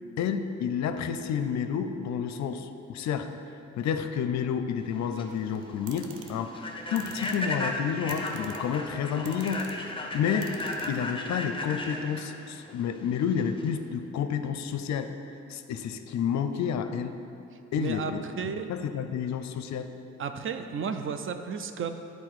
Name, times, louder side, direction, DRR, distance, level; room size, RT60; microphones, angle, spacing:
voice 1, 0.2-3.3 3.7-6.5 6.9-10.5 10.9-15.1 15.5-17.2 17.7-19.9, left 7 dB, 65° left, 9 dB, 0.5 m, -30 dB
Human voice / Train, 4.9-13.8, left 2 dB, 15° left, 0.7 m, -36 dB
sound 1, 5.3-11.4, right 7 dB, 90° right, 0.6 m, -48 dB
voice 2, 17.8-18.7 20.2-21.9, right 6 dB, 45° right, 8 dB, 0.5 m, -33 dB
8.6 x 4.1 x 4.7 m, 2.7 s
cardioid pair, 90°, 30 cm